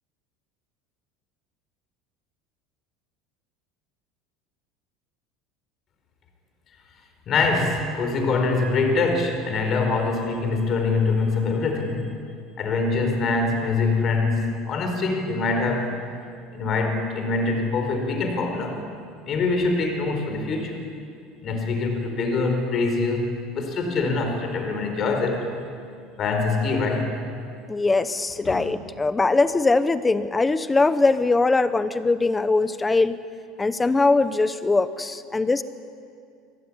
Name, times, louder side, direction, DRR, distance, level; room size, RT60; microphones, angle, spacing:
voice 1, 7.3-12.1 12.6-15.9 16.5-18.8 19.3-20.8 21.4-25.4 26.2-27.2 28.4-28.5, left 3 dB, 30° left, 4 dB, 4.6 m, -24 dB
voice 2, 27.7-33.2 33.6-35.6, left 3 dB, 10° left, 13 dB, 0.9 m, -21 dB
24.5 x 23.0 x 9.9 m, 2.3 s
cardioid pair, 170°, 0 cm